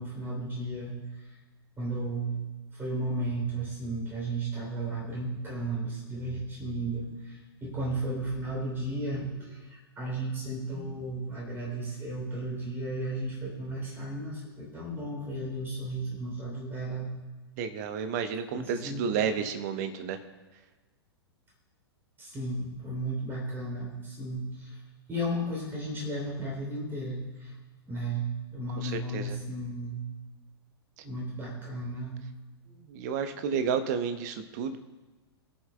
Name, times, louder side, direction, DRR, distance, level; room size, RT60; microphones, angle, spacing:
voice 1, 0.0-1.4 1.8-2.4 2.7-17.1 18.5-19.2 22.2-24.8 25.1-27.5 27.9-28.3 28.5-30.0 31.0-32.2, right 1 dB, 15° right, -3 dB, 3.2 m, -34 dB
voice 2, 17.6-20.2 28.8-29.4 32.8-34.8, right 6 dB, 40° right, 8 dB, 0.9 m, -31 dB
22.5 x 7.7 x 2.3 m, 1.2 s
figure-of-eight pair, 105°, 14 cm